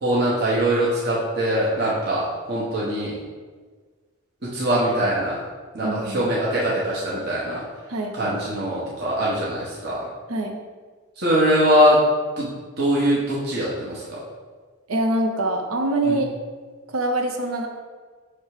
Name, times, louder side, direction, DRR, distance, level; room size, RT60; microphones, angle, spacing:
voice 1, 0.0-3.2 4.4-5.4 5.7-7.6 8.1-10.0 11.2-12.0 12.4-12.5 12.8-14.2 16.0-16.2, equal, 50° right, -7 dB, 1.1 m, -22 dB
voice 2, 5.8-6.3 7.9-8.4 10.3-10.6 14.9-16.3 16.9-17.7, right 2 dB, 90° right, 3 dB, 0.7 m, -24 dB
6.4 x 3.3 x 4.8 m, 1.5 s
head